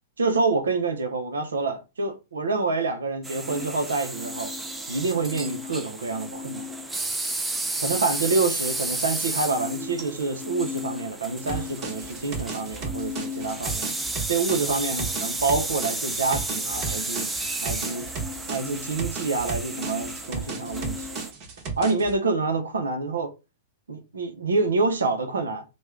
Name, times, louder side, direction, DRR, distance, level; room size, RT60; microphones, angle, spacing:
voice 1, 0.2-4.5 4.9-6.7 7.8-13.9 14.3-17.3 17.6-18.1 18.5-21.1 21.8-23.3 23.9-25.6, right 3 dB, 85° right, 0.7 m, -27 dB
sound 1, 3.2-21.3, right 1 dB, 10° right, 0.5 m, -32 dB
sound 2, 11.5-22.1, right 5 dB, 45° right, 1.1 m, -35 dB
3.0 x 2.3 x 3.6 m
hypercardioid pair, 115°, 0 cm